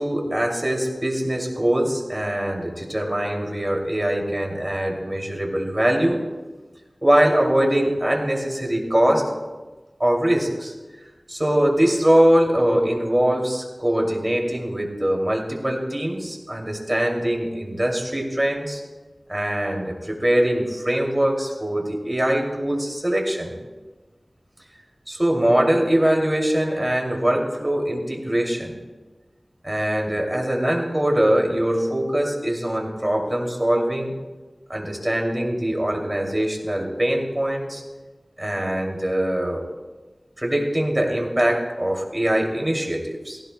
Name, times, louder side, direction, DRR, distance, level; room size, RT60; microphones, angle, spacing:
voice 1, 0.0-6.2 7.0-9.3 10.0-10.7 11.3-18.8 19.3-23.5 25.1-28.7 29.6-34.1 34.7-37.8 38.4-39.7 40.4-43.4, right 1 dB, 25° right, 1 dB, 2.6 m, -22 dB
17.5 x 16.5 x 2.2 m, 1.2 s
wide cardioid pair, 50°, 0 cm